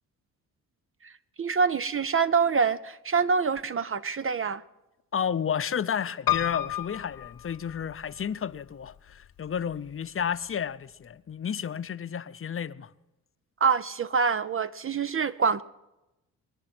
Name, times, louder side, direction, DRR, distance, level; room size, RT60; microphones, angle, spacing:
voice 1, 1.4-4.6 13.6-15.6, right 5 dB, 35° right, 0.6 m, -25 dB
voice 2, 5.1-12.9, left 8 dB, 35° left, 0.8 m, -31 dB
Piano, 6.3-8.2 8.9-9.6 9.9-10.0 10.2-10.3, left 13 dB, 65° left, 1.0 m, -31 dB
23.0 x 9.8 x 6.1 m
supercardioid pair, 60°, 37 cm